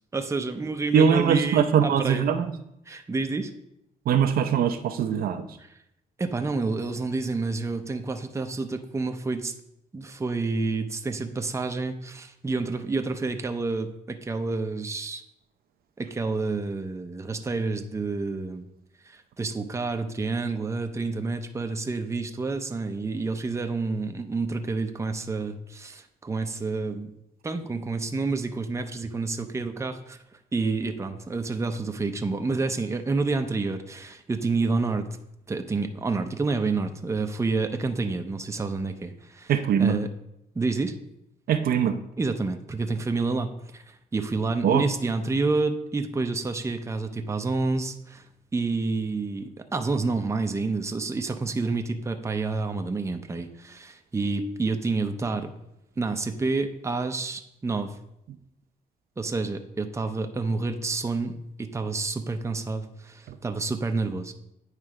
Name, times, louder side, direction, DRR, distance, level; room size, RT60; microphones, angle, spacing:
voice 1, 0.1-2.2 2.9-3.5 5.6-5.7 6.2-9.5 9.9-15.2 16.0-18.6 19.0-27.1 27.4-30.2 30.5-35.1 35.5-39.5 39.8-40.1 40.5-40.9 42.2-48.2 48.5-55.5 56.0-58.0 59.2-64.3, right 3 dB, 20° right, 6 dB, 0.6 m, -29 dB
voice 2, 0.9-2.5 4.1-5.5 39.5-40.0 41.5-42.0 44.6-44.8, right 7 dB, 70° right, 8 dB, 0.6 m, -22 dB
9.3 x 3.3 x 4.8 m, 0.80 s
cardioid pair, 95°, 16 cm